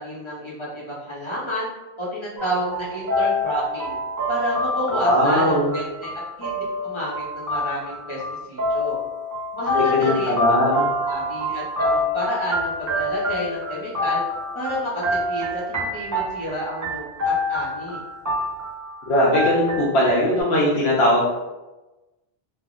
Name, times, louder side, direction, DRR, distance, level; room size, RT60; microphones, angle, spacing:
voice 1, 0.0-1.7 2.0-4.0 4.3-6.1 6.4-8.2 8.5-9.0 9.5-10.3 11.1-14.2 14.5-18.0, equal, 30° left, -6 dB, 0.7 m, -30 dB
sound 1, 2.4-19.0 19.3-20.4, left 1 dB, 25° right, 0.4 m, -27 dB
voice 2, 5.0-5.7 9.7-10.8 19.1-21.3, left 1 dB, 80° left, -6 dB, 0.9 m, -19 dB
3.4 x 2.1 x 2.4 m, 1.1 s
omnidirectional pair, 1.1 m